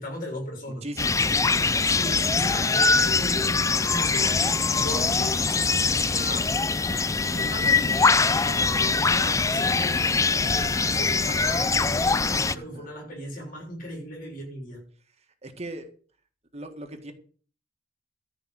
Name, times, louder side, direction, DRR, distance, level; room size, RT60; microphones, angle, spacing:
voice 1, 0.0-0.9 1.8-7.0 7.3-10.0 10.3-14.9, left 1 dB, 50° left, 6.8 m, -37 dB
voice 2, 0.8-1.4 12.3-12.9 15.4-15.9 16.5-17.1, right 1 dB, 35° right, 1.7 m, -39 dB
sound 1, 1.0-12.5, left 4 dB, 15° left, 0.5 m, -23 dB
13.5 x 5.7 x 7.7 m
head